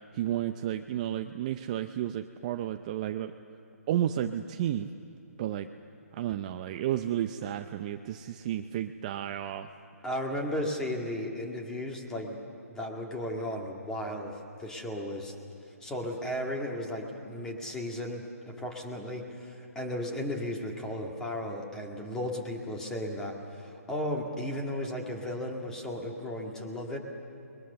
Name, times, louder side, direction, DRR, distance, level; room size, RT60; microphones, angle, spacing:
voice 1, 0.1-3.3 3.9-4.9 5.4-5.7 6.1-9.7, right 11 dB, 30° right, 7 dB, 0.6 m, -32 dB
voice 2, 10.0-12.4 12.7-15.3 15.8-27.0, left 1 dB, 5° left, 1 dB, 2.0 m, -35 dB
30.0 x 22.0 x 6.9 m, 2.9 s
hypercardioid pair, 160°, 8 cm